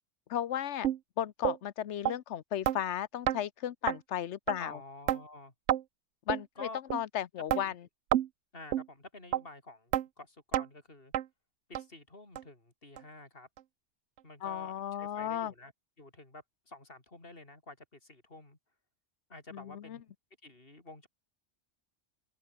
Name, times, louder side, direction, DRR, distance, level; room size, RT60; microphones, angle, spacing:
voice 1, 0.3-0.9 1.2-4.8 6.3-7.7 14.4-15.5 19.5-20.0, left 10 dB, 75° left, 1.1 m, -35 dB
sound 1, 0.8-1.0 1.4-1.6 2.1-2.2 2.7-2.8 3.3-3.4 3.9-4.0 4.5-4.6 5.1-5.2 5.7-5.8 6.3-6.4 6.9-7.0 7.5-7.6 8.1-8.3 8.7-8.9 9.3-9.4 9.9-10.1 10.5-10.7 11.1-11.3 11.7-11.8 12.4-12.5 13.0-13.1 13.6-13.7, right 12 dB, 85° right, 1.0 m, -29 dB
voice 2, 4.6-5.5 6.6-6.8 7.5-7.7 8.5-11.1 11.7-13.5 14.2-15.7 16.0-18.6 19.3-20.0 20.4-21.1, left 2 dB, 50° left, 4.7 m, -49 dB
open air
omnidirectional pair, 1.2 m